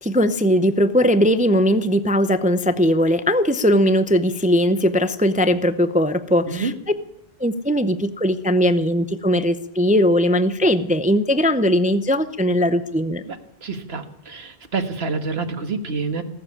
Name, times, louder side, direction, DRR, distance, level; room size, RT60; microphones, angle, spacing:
voice 1, 0.0-6.7 7.4-13.2, equal, 10° right, 12 dB, 0.5 m, -19 dB
voice 2, 13.3-16.2, right 4 dB, 70° right, 7 dB, 1.7 m, -28 dB
19.0 x 7.6 x 9.8 m, 0.79 s
omnidirectional pair, 1.1 m